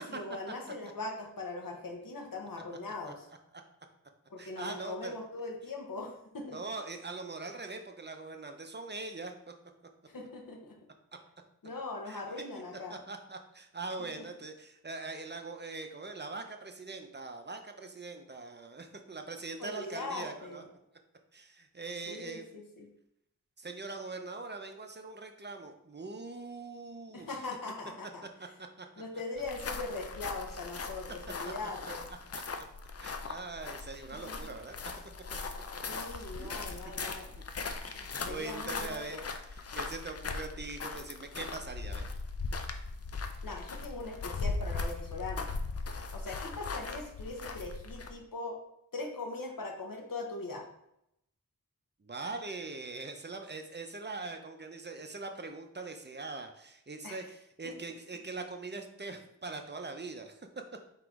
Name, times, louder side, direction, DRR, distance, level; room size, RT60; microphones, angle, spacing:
voice 1, 0.0-3.3 4.3-6.6 10.1-10.8 11.6-13.0 14.0-14.1 19.6-20.7 22.1-22.9 27.1-28.2 29.0-32.0 34.3-34.5 35.9-37.3 38.3-39.2 43.4-45.5 46.1-48.6 48.9-50.6 57.0-57.2 57.6-57.7, left 3 dB, 75° left, 1 dB, 1.0 m, -41 dB
voice 2, 4.4-5.1 6.5-9.5 12.1-12.2 12.9-20.6 21.3-22.5 23.6-27.4 28.4-28.9 31.4-31.5 31.8-31.9 33.0-34.8 36.4-36.8 37.8-39.2 39.5-42.1 52.0-60.4, right 3 dB, 30° right, 5 dB, 0.6 m, -42 dB
sound 1, 29.4-48.2, left 4 dB, 45° left, 0.4 m, -39 dB
3.8 x 3.0 x 4.6 m, 0.78 s
wide cardioid pair, 65°, 34 cm